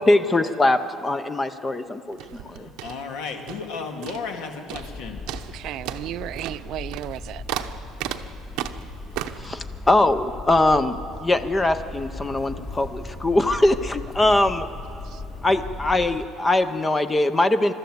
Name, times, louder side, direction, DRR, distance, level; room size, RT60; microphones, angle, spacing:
voice 1, 0.0-2.7 9.4-14.7 15.4-17.7, left 2 dB, 15° left, 10 dB, 0.5 m, -22 dB
sound 1, 2.1-3.7 4.0-4.4 4.7-5.0 5.3-9.5, right 12 dB, 80° right, 0.8 m, -34 dB
voice 2, 2.5-5.2, left 5 dB, 75° left, 4 dB, 2.1 m, -34 dB
sound 2, 4.7-16.2, left 2 dB, 45° left, 3.1 m, -38 dB
voice 3, 5.5-7.4 15.0-15.2, right 13 dB, 55° right, 15 dB, 0.4 m, -34 dB
26.5 x 13.0 x 7.9 m, 2.6 s
cardioid pair, 170°, 0 cm